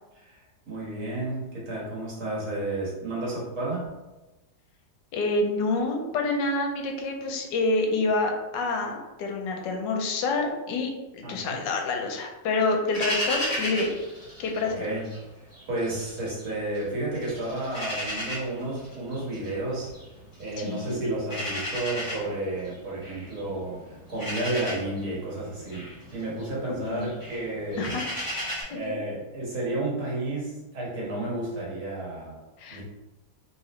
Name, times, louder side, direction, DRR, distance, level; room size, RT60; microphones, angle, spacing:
voice 1, 0.2-3.9 11.2-11.6 14.6-15.1 15.7-19.9 20.4-28.0 28.7-32.4 32.7-32.8, right 2 dB, 60° right, -5 dB, 1.8 m, -32 dB
voice 2, 5.1-13.9 14.4-14.8 20.6-21.0 26.9-27.1 27.8-28.0 28.7-29.0 32.6-32.8, left 3 dB, 90° left, 2 dB, 1.3 m, -27 dB
sound 1, 12.9-15.2 15.5-16.8 17.1-28.6, equal, 15° left, 1.0 m, -35 dB
3.7 x 3.0 x 3.1 m, 1.1 s
omnidirectional pair, 1.9 m